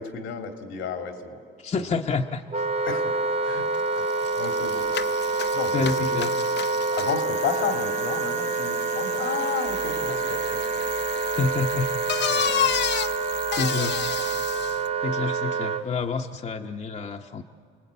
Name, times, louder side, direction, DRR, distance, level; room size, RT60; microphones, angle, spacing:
voice 1, 0.0-1.4 1.8-2.0 2.8-3.6 3.9-4.1 4.4-4.9 5.5-6.2 6.9-10.9 11.1-11.3 12.3-12.5, left 6 dB, 90° left, 5 dB, 2.6 m, -32 dB
voice 2, 1.6-2.4 5.7-6.3 11.3-11.9 13.5-14.0 15.0-17.4, left 4 dB, 35° left, 3 dB, 0.9 m, -28 dB
Wind instrument woodwind instrument, 2.5-15.9, right 4 dB, 30° right, 0.7 m, -27 dB
Bicycle, 3.7-3.8 4.1-14.9, left 8 dB, 60° left, 0.7 m, -32 dB
sound 1, 9.7-14.5, right 7 dB, 80° right, 2.8 m, -41 dB
28.5 x 19.5 x 8.3 m, 2.2 s
cardioid pair, 90°, 20 cm